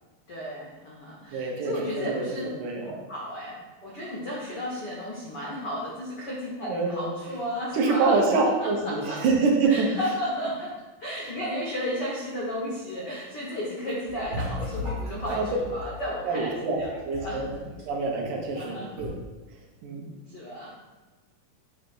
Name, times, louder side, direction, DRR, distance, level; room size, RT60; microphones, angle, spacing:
voice 1, 0.3-2.5 3.1-8.2 8.6-9.2 9.7-10.7 11.0-17.4 18.6-18.9 20.3-20.7, equal, 75° left, -5 dB, 0.9 m, -34 dB
voice 2, 1.3-2.9 6.6-7.1 7.7-9.9 11.2-11.3 15.3-15.5 16.3-16.8 17.0-17.5 17.9-19.2 19.8-20.1, right 4 dB, 80° right, 0 dB, 2.5 m, -26 dB
sound 1, 13.9-15.9 16.7-18.7 19.0-19.1, left 1 dB, 40° right, 1.1 m, -35 dB
7.3 x 2.8 x 5.3 m, 1.2 s
omnidirectional pair, 3.6 m